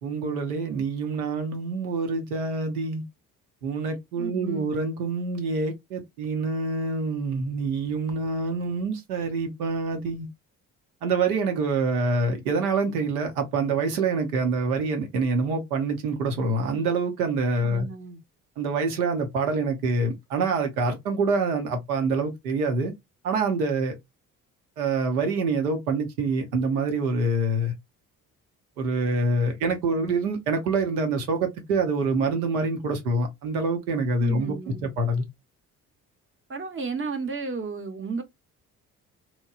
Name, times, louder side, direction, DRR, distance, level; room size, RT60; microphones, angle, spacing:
voice 1, 0.0-3.0 3.6-10.3 11.0-17.9 18.6-22.9 23.2-24.0 24.8-27.7 28.8-34.6 34.8-35.3, right 3 dB, 85° right, 0.8 m, -26 dB
voice 2, 4.2-4.7 17.6-18.2 34.2-34.9 36.5-38.2, right 4 dB, 30° right, 0.8 m, -33 dB
3.0 x 2.2 x 2.2 m
hypercardioid pair, 45°, 43 cm